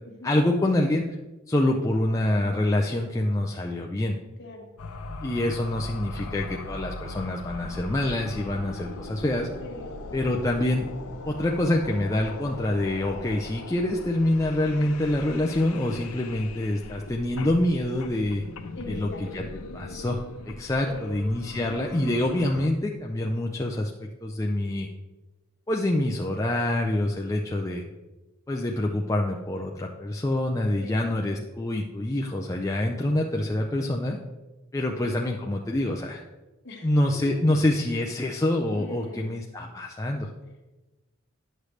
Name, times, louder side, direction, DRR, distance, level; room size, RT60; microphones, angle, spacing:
voice 1, 0.2-1.0 1.5-4.2 5.2-9.5 10.1-10.9 11.2-18.4 18.9-19.4 19.7-20.2 20.5-23.9 24.2-24.9 25.7-27.8 28.5-34.2 34.7-36.2 36.8-40.3, left 1 dB, 15° left, 0 dB, 0.4 m, -26 dB
voice 2, 4.4-4.7 9.6-10.1 18.7-19.2 20.8-21.3 30.8-31.3 34.9-35.1 36.6-37.3 37.6-37.8 38.7-39.4, left 2 dB, 55° left, 1 dB, 1.5 m, -42 dB
sound 1, 4.8-22.7, left 2 dB, 85° left, 0.7 m, -39 dB
9.9 x 6.6 x 3.2 m, 1.1 s
head